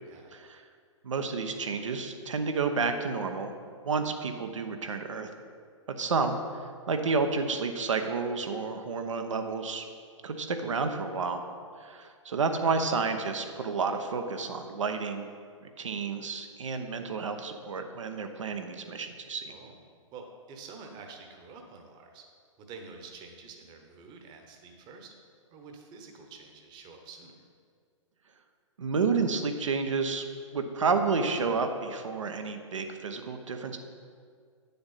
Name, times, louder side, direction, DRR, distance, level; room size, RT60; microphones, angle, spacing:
voice 1, 0.1-0.4 19.5-19.7 20.1-22.2 22.6-25.1 25.5-27.3, right 4 dB, 25° right, 4 dB, 1.1 m, -48 dB
voice 2, 1.0-3.5 3.8-5.3 6.0-6.4 6.9-9.8 10.2-11.4 11.8-15.3 15.8-19.5 28.8-30.2 30.5-33.8, right 4 dB, 70° right, 6 dB, 0.9 m, -30 dB
9.8 x 6.9 x 4.1 m, 2.1 s
figure-of-eight pair, 115°, 17 cm